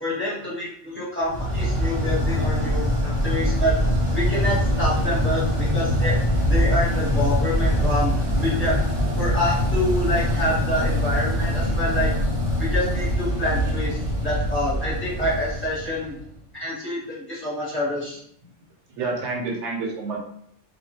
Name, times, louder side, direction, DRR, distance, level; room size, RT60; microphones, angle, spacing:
voice 1, 0.0-3.7 4.1-6.1 6.5-8.7 9.2-12.1 12.6-16.2 16.6-18.2, left 1 dB, 10° left, -8 dB, 0.9 m, -27 dB
sound 1, 1.3-16.3, equal, 30° right, 0.9 m, -23 dB
voice 2, 18.9-20.2, right 3 dB, 70° right, -1 dB, 1.0 m, -30 dB
2.3 x 2.2 x 2.7 m, 0.67 s
omnidirectional pair, 1.3 m